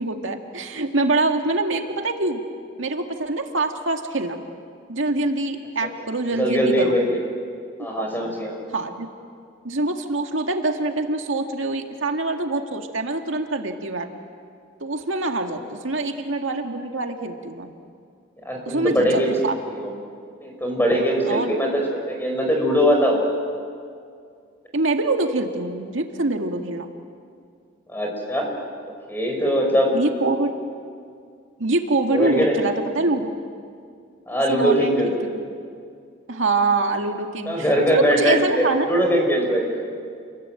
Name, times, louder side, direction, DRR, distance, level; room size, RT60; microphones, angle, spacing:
voice 1, 0.0-2.4 2.8-4.4 4.9-7.0 8.0-8.3 8.7-9.1 9.6-14.1 14.8-17.7 18.7-19.5 21.3-21.5 24.7-26.9 29.9-30.5 31.6-33.4 34.5-35.1 36.3-37.7 37.9-38.9, right 2 dB, 85° right, 4 dB, 2.0 m, -24 dB
voice 2, 6.4-7.2 7.8-8.6 18.4-19.9 20.4-23.2 27.9-28.5 29.1-30.5 32.1-32.6 34.3-35.1 37.4-39.7, equal, 10° left, 1 dB, 5.2 m, -21 dB
29.0 x 22.0 x 9.0 m, 2.2 s
head